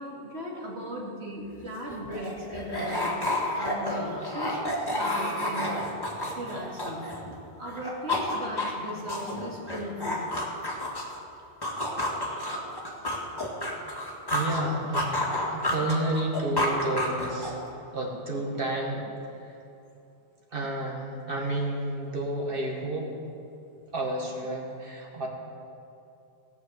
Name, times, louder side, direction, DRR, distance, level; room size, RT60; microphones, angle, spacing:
voice 1, 0.0-3.2 3.6-5.8 6.4-7.1 7.6-10.3, equal, 75° right, -3 dB, 2.7 m, -37 dB
sound 1, 1.5-7.4 7.7-11.2 11.6-14.6 14.9-17.7, left 1 dB, 20° left, 1.9 m, -30 dB
voice 2, 14.3-17.6 17.9-19.1 19.4-19.6 20.5-23.1 23.9-25.3, right 1 dB, 55° right, -1 dB, 2.2 m, -31 dB
17.5 x 6.2 x 8.0 m, 2.7 s
omnidirectional pair, 1.1 m